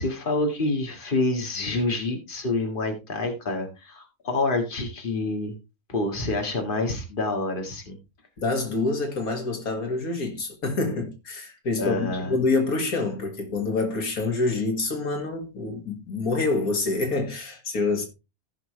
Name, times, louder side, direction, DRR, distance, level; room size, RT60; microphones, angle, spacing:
voice 1, 0.0-5.5 5.9-8.0 11.8-12.3, left 2 dB, 35° left, 2.1 m, -27 dB
voice 2, 8.4-18.1, left 3 dB, 80° left, 2.4 m, -27 dB
15.5 x 6.1 x 3.2 m
omnidirectional pair, 1.5 m